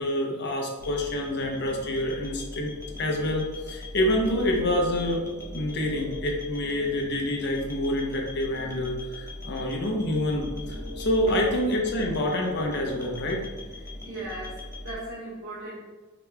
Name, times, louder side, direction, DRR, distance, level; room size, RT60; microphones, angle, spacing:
voice 1, 0.0-5.2 5.5-13.4, left 1 dB, 55° left, 0 dB, 0.7 m, -27 dB
sound 1, 0.8-14.9, left 1 dB, 15° left, 0.6 m, -39 dB
voice 2, 13.8-15.9, right 1 dB, 80° right, -12 dB, 1.3 m, -38 dB
5.0 x 3.0 x 2.2 m, 1.3 s
head